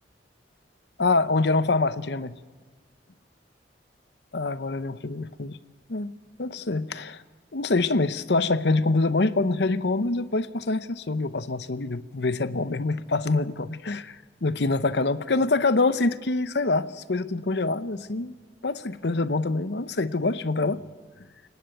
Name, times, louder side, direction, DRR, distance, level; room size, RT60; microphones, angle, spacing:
voice 1, 1.0-2.4 4.3-5.6 5.9-6.1 6.4-7.2 7.5-18.3 18.6-20.8, left 3 dB, 65° left, 14 dB, 0.8 m, -25 dB
29.5 x 18.5 x 9.1 m, 1.5 s
head